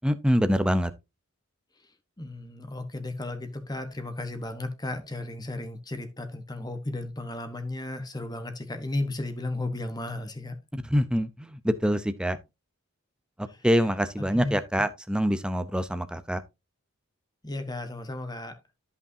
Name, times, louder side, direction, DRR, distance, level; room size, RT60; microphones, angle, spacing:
voice 1, 0.0-0.9 10.7-12.4 13.4-16.4, equal, 5° right, 0.6 m, -25 dB
voice 2, 2.2-10.5 13.5-13.7 14.3-14.5 17.4-18.6, left 2 dB, 20° left, 1.1 m, -34 dB
13.0 x 5.6 x 2.7 m
head